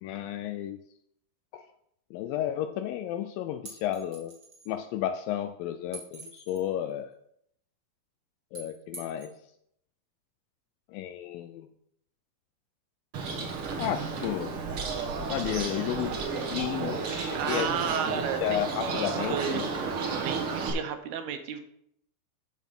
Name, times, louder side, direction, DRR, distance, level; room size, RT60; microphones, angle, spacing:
voice 1, 0.0-0.8 1.5-1.7 2.1-4.3 4.7-7.1 8.5-9.4 10.9-11.7 13.8-14.5 15.3-17.7 18.2-19.7, left 11 dB, 80° left, 9 dB, 2.1 m, -32 dB
sound 1, 3.6-4.7 5.9-6.7 8.5-9.3, right 3 dB, 35° right, 2.0 m, -45 dB
Bird, 13.1-20.7, right 4 dB, 60° right, 1.4 m, -32 dB
voice 2, 17.3-19.6 20.2-21.6, right 8 dB, 80° right, 7 dB, 2.9 m, -33 dB
9.3 x 6.2 x 5.3 m, 0.73 s
omnidirectional pair, 4.5 m